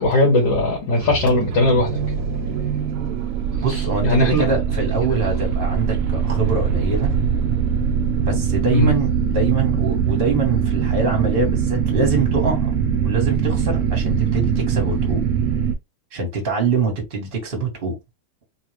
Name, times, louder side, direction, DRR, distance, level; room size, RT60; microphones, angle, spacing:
voice 1, 0.0-2.0 4.0-4.5 8.7-8.9, left 1 dB, 85° left, 2.1 m, -18 dB
sound 1, 0.9-15.7, right 7 dB, 60° right, 0.9 m, -22 dB
voice 2, 3.6-7.1 8.2-12.7 13.0-15.2 16.1-18.0, right 4 dB, 35° right, 1.2 m, -24 dB
4.1 x 2.3 x 3.1 m
omnidirectional pair, 2.0 m